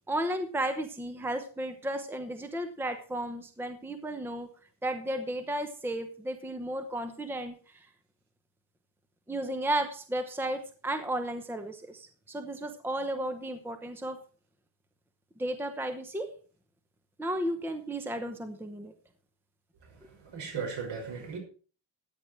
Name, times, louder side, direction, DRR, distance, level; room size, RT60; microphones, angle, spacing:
voice 1, 0.1-4.5 4.8-7.5 9.3-14.2 15.4-16.3 17.2-18.9, right 1 dB, 5° right, 7 dB, 0.9 m, -33 dB
voice 2, 20.0-21.4, right 5 dB, 70° right, 3 dB, 5.7 m, -37 dB
14.0 x 9.3 x 4.5 m, 0.38 s
cardioid pair, 180°, 44 cm